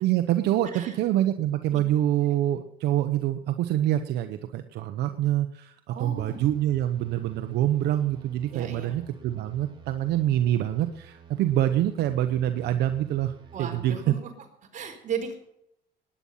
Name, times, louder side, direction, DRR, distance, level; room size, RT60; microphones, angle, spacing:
voice 1, 0.0-13.3 13.6-14.1, right 12 dB, 80° right, 8 dB, 1.0 m, -26 dB
voice 2, 5.9-6.4 8.5-8.9 13.5-14.2 14.7-15.4, right 7 dB, 50° right, 3 dB, 4.4 m, -35 dB
sound 1, 6.2-13.8, right 8 dB, 30° right, 4.1 m, -51 dB
19.5 x 10.0 x 5.7 m, 0.77 s
cardioid pair, 110°, 17 cm